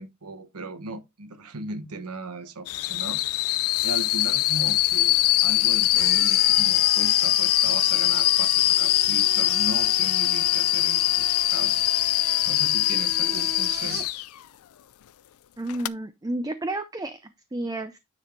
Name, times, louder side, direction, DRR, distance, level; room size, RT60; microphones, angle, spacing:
voice 1, 0.0-3.2 3.8-12.0 12.4-14.0, right 2 dB, 85° right, 1.0 m, -37 dB
sound 1, 2.7-14.3 15.7-15.9, left 16 dB, 70° left, 0.4 m, -22 dB
sound 2, 5.9-14.1, right 6 dB, 45° right, 1.0 m, -38 dB
voice 2, 15.6-18.0, right 1 dB, 15° right, 0.5 m, -31 dB
9.7 x 4.1 x 3.3 m
head